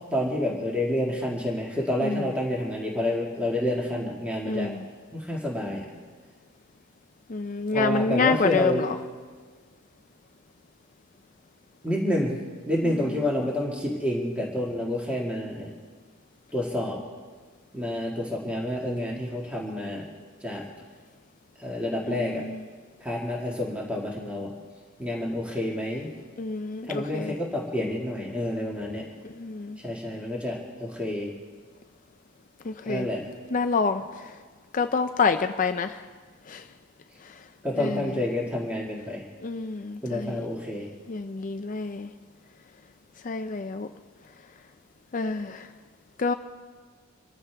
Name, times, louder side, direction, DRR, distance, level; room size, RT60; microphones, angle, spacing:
voice 1, 0.1-4.7 5.1-5.9 7.7-8.9 11.8-12.4 12.7-15.7 16.5-17.0 17.7-20.1 20.4-20.6 21.6-22.4 23.0-24.5 25.0-26.1 26.9-29.0 29.8-31.3 32.9-33.2 37.6-39.2 40.0-40.9, left 1 dB, 5° right, -3 dB, 1.9 m, -29 dB
voice 2, 4.5-4.8 7.3-8.9 12.8-13.0 22.1-22.6 26.4-27.3 29.4-29.8 32.7-33.1 33.5-34.0 34.7-36.0 36.5-36.6 37.8-38.0 39.4-40.4 41.1-42.1 43.2-43.9 45.1-45.7 46.2-46.3, left 4 dB, 35° left, 8 dB, 0.4 m, -27 dB
26.5 x 14.0 x 3.4 m, 1.5 s
head